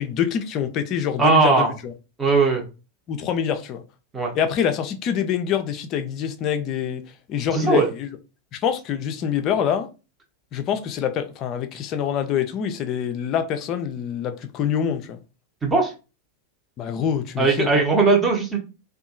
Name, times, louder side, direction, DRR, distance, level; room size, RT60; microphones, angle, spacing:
voice 1, 0.0-1.9 3.1-3.8 4.3-8.2 8.5-9.9 10.5-15.2 16.8-17.8, left 8 dB, 35° left, 0.4 m, -25 dB
voice 2, 1.2-1.7 2.2-2.6 4.1-4.3 7.5-7.9 15.6-15.9 17.4-18.6, right 4 dB, 15° right, 0.7 m, -18 dB
2.6 x 2.3 x 2.5 m
figure-of-eight pair, 90°, 0 cm